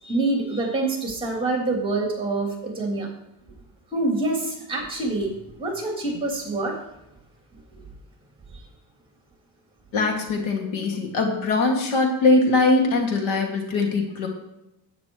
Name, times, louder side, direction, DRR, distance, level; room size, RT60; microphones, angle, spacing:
voice 1, 0.0-3.1 3.9-5.3 5.6-6.8, right 2 dB, 10° right, -1 dB, 3.2 m, -26 dB
voice 2, 9.9-14.3, left 3 dB, 85° left, 2 dB, 2.5 m, -21 dB
12.5 x 9.3 x 3.2 m, 0.90 s
cardioid pair, 130°, 47 cm